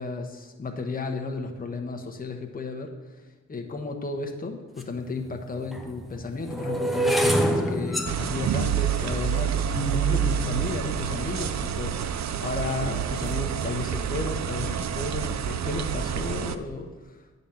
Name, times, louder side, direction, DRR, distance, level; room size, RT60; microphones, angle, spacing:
voice 1, 0.0-2.9 3.5-17.2, left 3 dB, 30° left, 3 dB, 0.9 m, -33 dB
sound 1, 4.8-4.9 5.6-11.8 12.5-12.8 13.1-13.5, equal, ahead, 0.7 m, -28 dB
sound 2, 8.1-16.6, right 8 dB, 65° right, 0.5 m, -28 dB
8.9 x 4.0 x 6.9 m, 1.4 s
wide cardioid pair, 145°, 30 cm